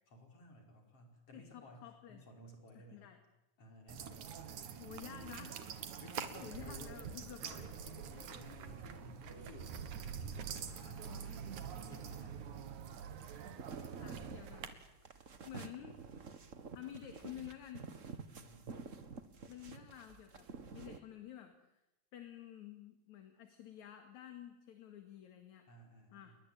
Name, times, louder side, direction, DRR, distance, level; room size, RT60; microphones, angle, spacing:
voice 1, 0.1-3.1 3.6-5.4 6.0-7.0 7.4-9.9 10.4-12.8 18.1-18.8 25.7-26.4, left 1 dB, 45° left, 3 dB, 6.0 m, -57 dB
voice 2, 1.3-2.3 2.7-3.2 4.8-5.6 6.2-7.7 11.1-11.4 14.0-14.7 15.0-16.0 16.7-17.9 19.4-21.8 22.1-25.7 26.1-26.4, left 11 dB, 65° left, 6 dB, 3.2 m, -51 dB
sound 1, 3.9-14.7, right 7 dB, 70° right, 3.1 m, -46 dB
sound 2, 13.5-21.0, right 5 dB, 40° right, 1.2 m, -50 dB
29.0 x 22.0 x 9.0 m, 0.91 s
omnidirectional pair, 3.7 m